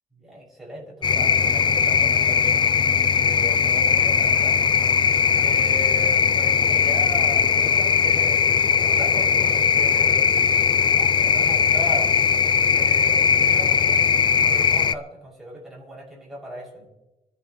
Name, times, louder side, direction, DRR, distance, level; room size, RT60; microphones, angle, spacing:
voice 1, 0.2-2.6 3.1-4.6 5.4-10.3 11.0-12.1 12.7-14.1 14.4-16.9, equal, ahead, -6 dB, 6.6 m, -37 dB
sound 1, 1.0-15.0, left 7 dB, 35° left, 0.4 m, -19 dB
26.5 x 11.0 x 3.2 m, 1.0 s
cardioid pair, 150°, 14 cm